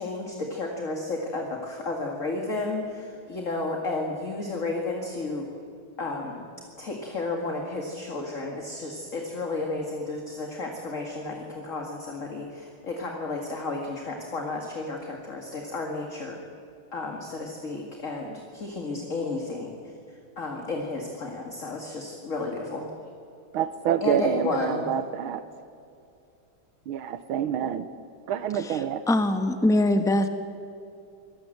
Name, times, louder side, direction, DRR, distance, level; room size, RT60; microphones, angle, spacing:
voice 1, 0.0-5.5 6.0-6.5 6.8-16.4 16.9-19.9 20.4-22.9 24.0-24.9, left 3 dB, 40° left, 2 dB, 2.4 m, -32 dB
voice 2, 23.5-25.4 26.9-27.9 28.3-29.0, right 9 dB, 90° right, 12 dB, 1.7 m, -27 dB
voice 3, 29.1-30.3, left 1 dB, ahead, 8 dB, 0.9 m, -22 dB
24.5 x 19.0 x 7.9 m, 2.5 s
omnidirectional pair, 2.2 m